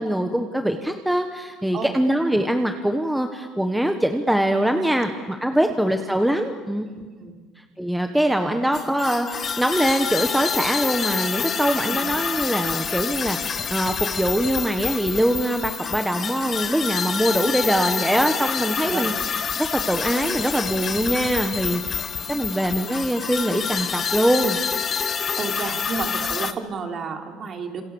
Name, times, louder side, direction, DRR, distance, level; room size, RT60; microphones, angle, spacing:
voice 1, 0.0-6.9 7.8-9.3 9.6-19.1 19.7-24.6, right 1 dB, 5° right, 6 dB, 1.4 m, -23 dB
voice 2, 6.9-7.4 8.4-8.6 11.8-12.1 18.8-19.1 22.3-22.6 25.3-27.8, right 5 dB, 35° right, 4 dB, 3.3 m, -32 dB
sound 1, 8.7-26.5, left 6 dB, 30° left, 1.1 m, -27 dB
29.0 x 27.0 x 7.2 m, 1.4 s
cardioid pair, 140°, 0 cm